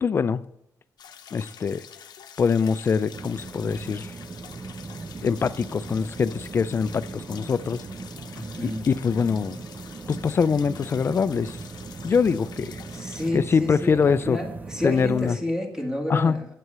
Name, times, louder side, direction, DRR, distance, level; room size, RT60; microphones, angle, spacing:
voice 1, 0.0-0.5 1.3-1.8 2.4-4.1 5.2-7.8 8.6-9.6 10.1-11.6 12.0-12.8 13.3-14.4 14.8-15.4 16.1-16.4, left 6 dB, 35° left, 0.4 m, -23 dB
sound 1, 1.0-13.3, left 8 dB, 75° left, 0.8 m, -47 dB
sound 2, 3.1-15.3, right 3 dB, 25° right, 0.5 m, -39 dB
voice 2, 8.3-8.8 12.9-16.5, left 1 dB, 10° right, 1.6 m, -30 dB
8.5 x 7.8 x 6.7 m
wide cardioid pair, 170°, 7 cm